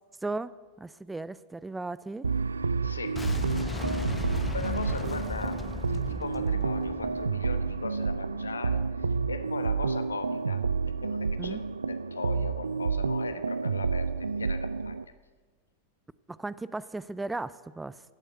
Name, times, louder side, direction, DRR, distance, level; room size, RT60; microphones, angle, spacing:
voice 1, 0.2-0.5 0.8-2.3 11.4-11.6 16.3-18.0, right 2 dB, 10° right, 18 dB, 0.4 m, -36 dB
sound 1, 2.2-15.0, right 4 dB, 75° right, 0.4 m, -30 dB
voice 2, 2.8-3.2 4.5-10.6 11.0-14.9, left 4 dB, 75° left, 10 dB, 1.1 m, -39 dB
Boom, 3.2-8.1, left 4 dB, 15° left, 0.9 m, -36 dB
16.5 x 7.8 x 9.0 m, 1.4 s
figure-of-eight pair, 90°, 0 cm